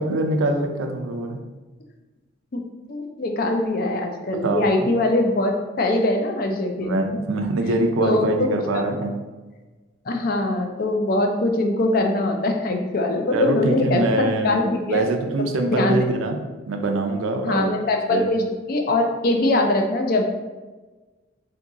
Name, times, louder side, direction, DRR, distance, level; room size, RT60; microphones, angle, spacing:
voice 1, 0.0-1.4 4.3-4.9 6.8-9.1 13.3-14.6 14.8-16.4 16.7-17.7 18.1-18.3, right 2 dB, 85° right, 5 dB, 0.4 m, -24 dB
voice 2, 2.9-7.2 7.7-8.5 10.1-15.1 15.4-16.0 17.4-20.2, left 2 dB, 45° left, 4 dB, 0.4 m, -22 dB
2.8 x 2.7 x 3.5 m, 1.2 s
head